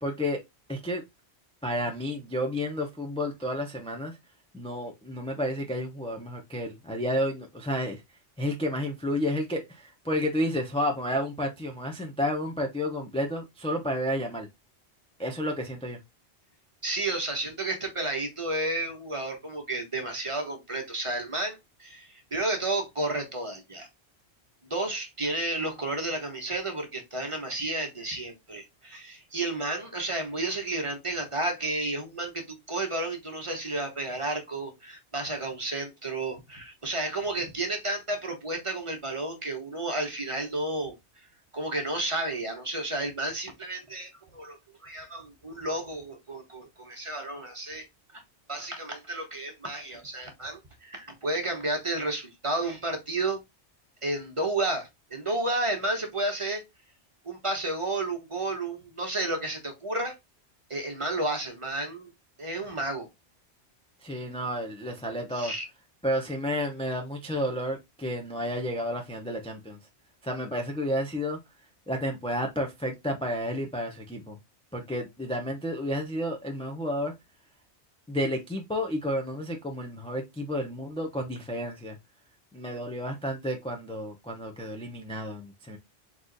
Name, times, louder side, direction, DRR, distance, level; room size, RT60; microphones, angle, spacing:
voice 1, 0.0-0.4 0.7-1.0 1.6-4.2 4.5-8.0 8.4-14.5 15.2-16.0 64.0-65.5 66.0-69.8 70.2-71.4 71.9-74.4 74.7-77.1 78.1-82.0 82.5-85.8, equal, 5° left, 0.5 m, -31 dB
voice 2, 16.8-23.9 24.6-41.3 41.5-47.9 48.1-48.2 48.5-53.4 54.0-56.6 57.2-60.1 60.7-62.1 62.4-63.1 65.3-65.6, right 2 dB, 30° right, 1.1 m, -32 dB
3.9 x 3.0 x 3.9 m
omnidirectional pair, 1.2 m